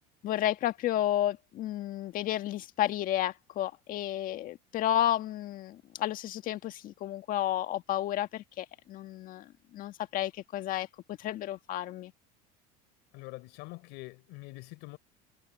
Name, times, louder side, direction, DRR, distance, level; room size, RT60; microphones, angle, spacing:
voice 1, 0.2-12.1, left 12 dB, 50° left, 1.6 m, -32 dB
voice 2, 13.1-15.0, left 23 dB, 70° left, 3.9 m, -45 dB
cardioid pair, 130°, 19 cm